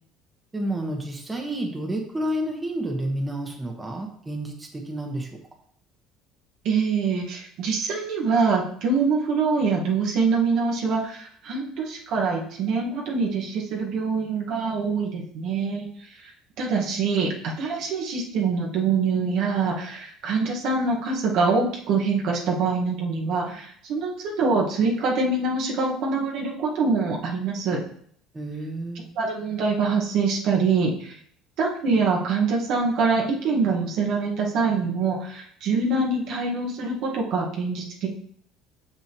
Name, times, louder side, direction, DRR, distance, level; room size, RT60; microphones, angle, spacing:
voice 1, 0.5-5.4 28.3-29.1, right 1 dB, 15° right, 1 dB, 1.3 m, -30 dB
voice 2, 6.6-15.9 16.2-16.3 16.6-27.8 29.2-31.2 31.6-38.1, right 4 dB, 65° right, -1 dB, 1.5 m, -24 dB
6.4 x 5.9 x 3.0 m, 0.64 s
supercardioid pair, 90°, 0 cm